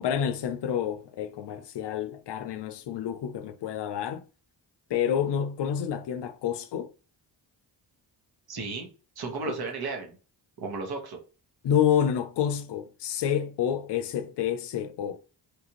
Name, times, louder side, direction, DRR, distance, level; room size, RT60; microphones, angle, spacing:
voice 1, 0.0-4.2 4.9-6.9 9.5-9.6 11.6-15.2, left 9 dB, 65° left, 0.6 m, -28 dB
voice 2, 8.5-8.9 9.2-10.2 10.6-11.2, right 4 dB, 55° right, 1.2 m, -34 dB
3.2 x 2.5 x 3.0 m
cardioid pair, 65°, 44 cm